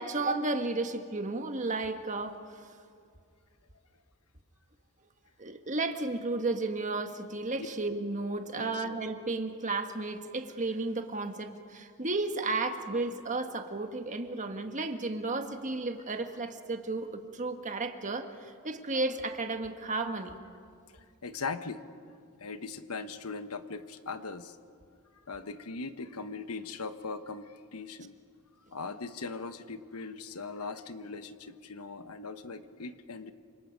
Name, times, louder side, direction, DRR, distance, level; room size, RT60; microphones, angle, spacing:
voice 1, 0.0-2.4 5.4-20.3, right 3 dB, 35° right, 6 dB, 1.5 m, -33 dB
voice 2, 20.9-24.6 25.3-28.2 28.7-33.3, left 4 dB, 90° left, 10 dB, 1.1 m, -40 dB
28.0 x 26.0 x 5.3 m, 2.3 s
head